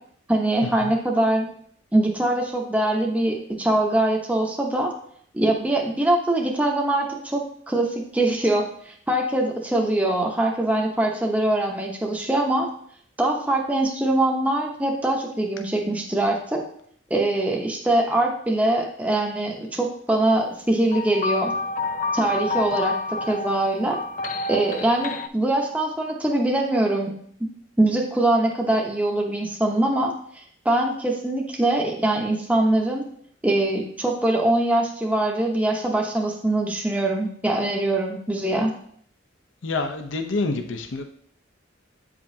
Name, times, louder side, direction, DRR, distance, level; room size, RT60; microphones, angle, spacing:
voice 1, 0.3-1.5 1.9-4.9 5.3-12.7 13.2-16.6 17.1-21.5 22.1-24.0 24.5-27.1 27.8-33.0 33.4-38.7, right 1 dB, 5° right, 0 dB, 0.7 m, -23 dB
sound 1, 20.9-25.3, left 3 dB, 40° left, 0.3 m, -29 dB
voice 2, 39.6-41.0, left 3 dB, 75° left, 6 dB, 0.7 m, -27 dB
8.5 x 5.0 x 2.7 m, 0.62 s
head